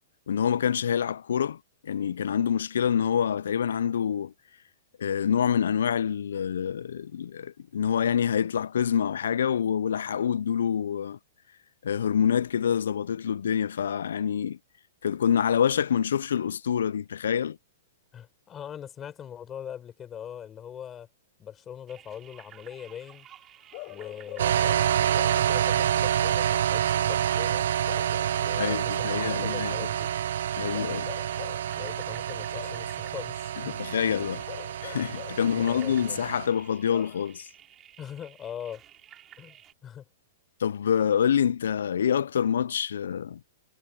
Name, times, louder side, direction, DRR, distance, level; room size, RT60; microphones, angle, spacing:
voice 1, 0.3-1.6 1.8-4.3 5.0-11.2 11.8-14.6 15.0-17.6 28.6-29.7 30.6-31.1 33.8-34.4 34.8-37.5 40.6-43.4, left 8 dB, 90° left, 0.3 m, -26 dB
voice 2, 18.1-21.1 21.4-23.3 23.9-27.7 28.4-30.1 31.7-33.8 35.4-36.2 38.0-38.8 39.4-39.6 39.8-40.0, left 9 dB, 15° left, 4.0 m, -41 dB
sound 1, 21.9-39.7, right 11 dB, 15° right, 4.4 m, -53 dB
Bark / Livestock farm animals working animals, 23.7-25.6 27.9-29.6 30.7-31.7 32.5-32.9 34.5-35.5 36.9-37.3, left 24 dB, 30° left, 0.6 m, -43 dB
sound 2, 24.4-36.5, right 10 dB, 60° right, 0.3 m, -28 dB
hypercardioid pair, 175°, 0 cm